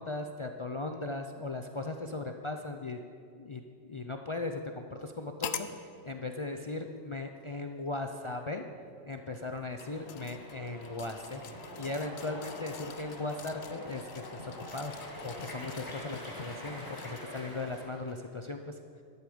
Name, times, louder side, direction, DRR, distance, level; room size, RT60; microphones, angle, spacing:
voice 1, 0.0-3.0 3.3-3.6 3.9-5.7 6.0-8.6 9.1-11.4 11.8-14.9 15.2-18.7, left 2 dB, 45° left, 5 dB, 0.4 m, -38 dB
sound 1, 5.4-5.8 6.8-6.9 9.3-17.4 17.9-18.0, left 8 dB, 60° left, 0.8 m, -45 dB
sound 2, 9.8-18.2, equal, 15° left, 1.9 m, -45 dB
13.0 x 11.0 x 5.1 m, 2.4 s
omnidirectional pair, 1.3 m